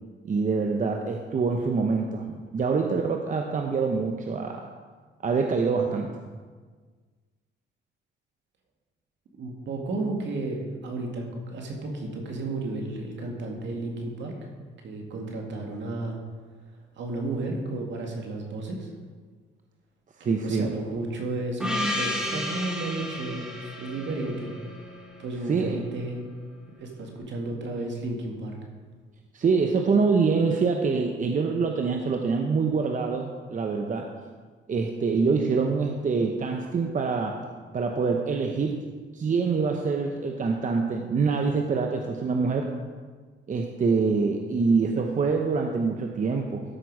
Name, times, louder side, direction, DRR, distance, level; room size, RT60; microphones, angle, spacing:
voice 1, 0.2-4.6 5.2-6.1 20.2-20.7 25.5-25.8 29.3-34.1 34.7-37.4 37.7-38.8 39.1-42.7 43.5-46.6, right 4 dB, 40° right, 3 dB, 0.8 m, -25 dB
voice 2, 9.4-14.3 14.8-16.1 17.0-18.9 20.2-23.5 23.8-24.5 25.2-26.2 26.8-28.6, right 2 dB, 65° right, 1 dB, 2.1 m, -33 dB
Gong, 21.6-25.9, left 1 dB, 5° right, 2.2 m, -33 dB
13.0 x 5.8 x 4.8 m, 1.5 s
cardioid pair, 90°, 20 cm